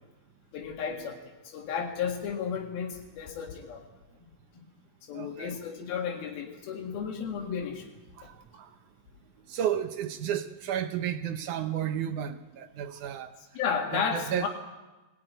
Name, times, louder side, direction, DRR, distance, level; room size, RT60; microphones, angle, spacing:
voice 1, 0.5-3.9 5.1-7.9 13.6-14.5, left 6 dB, 90° left, 3.8 m, -33 dB
voice 2, 5.1-5.6 8.2-8.7 9.5-13.3 13.9-14.5, right 9 dB, 70° right, 2.1 m, -32 dB
22.0 x 17.5 x 9.3 m
omnidirectional pair, 4.2 m